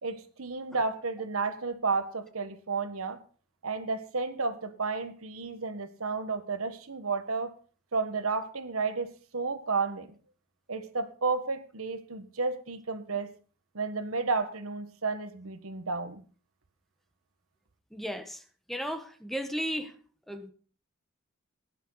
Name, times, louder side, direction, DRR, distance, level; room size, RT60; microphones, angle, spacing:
voice 1, 0.0-3.2 3.6-7.5 7.9-10.1 10.7-13.3 13.7-16.2, right 4 dB, 85° right, 10 dB, 1.3 m, -32 dB
voice 2, 17.9-18.4 18.7-19.9 20.3-20.5, equal, ahead, 8 dB, 1.2 m, -34 dB
17.5 x 10.0 x 4.0 m, 0.41 s
head